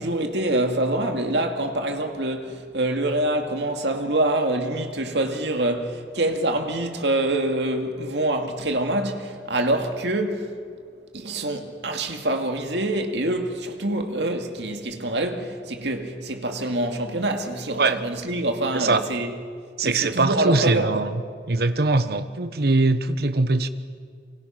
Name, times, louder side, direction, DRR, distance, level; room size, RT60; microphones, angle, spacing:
voice 1, 0.0-10.6 11.1-19.3 19.8-21.0, right 1 dB, 75° right, 2.4 m, -25 dB
voice 2, 19.8-21.2 21.5-23.7, right 3 dB, 60° right, 1.2 m, -22 dB
30.0 x 24.0 x 6.0 m
head